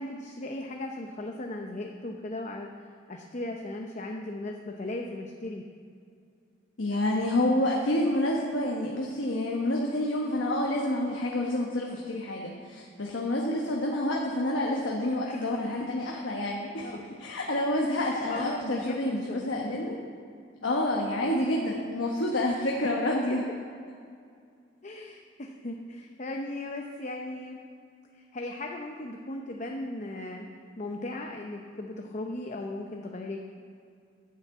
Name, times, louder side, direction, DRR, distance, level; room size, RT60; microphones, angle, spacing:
voice 1, 0.0-5.6 15.3-15.6 16.8-17.0 18.1-19.5 20.6-20.7 24.8-27.6 28.1-30.5 30.8-33.4, left 1 dB, 40° left, 2 dB, 0.7 m, -37 dB
voice 2, 6.8-20.0 20.6-23.4, left 1 dB, 75° left, -1 dB, 1.2 m, -28 dB
11.5 x 6.4 x 8.2 m, 2.3 s
head